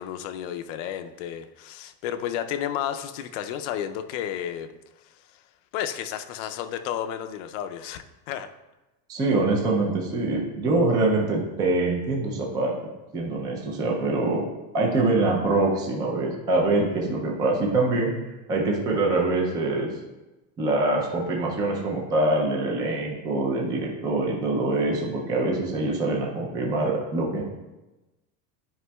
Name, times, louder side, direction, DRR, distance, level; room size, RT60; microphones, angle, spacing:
voice 1, 0.0-4.7 5.3-5.4 5.7-8.5, left 10 dB, 65° left, 9 dB, 0.6 m, -32 dB
voice 2, 9.1-12.7 13.1-14.4 14.7-18.1 18.5-19.9 20.6-27.4, right 2 dB, 10° right, -1 dB, 0.3 m, -24 dB
11.0 x 5.0 x 2.2 m, 1.1 s
cardioid pair, 175°, 40 cm